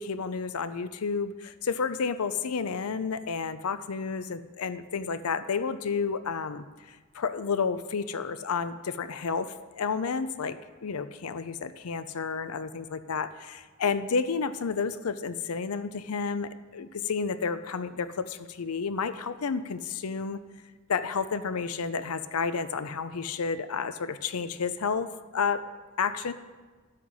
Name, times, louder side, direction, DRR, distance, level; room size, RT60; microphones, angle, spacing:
voice 1, 0.0-6.7 7.1-20.4 20.9-25.6 26.0-26.3, left 5 dB, 90° left, 13 dB, 0.6 m, -31 dB
12.5 x 7.7 x 4.1 m, 1.3 s
head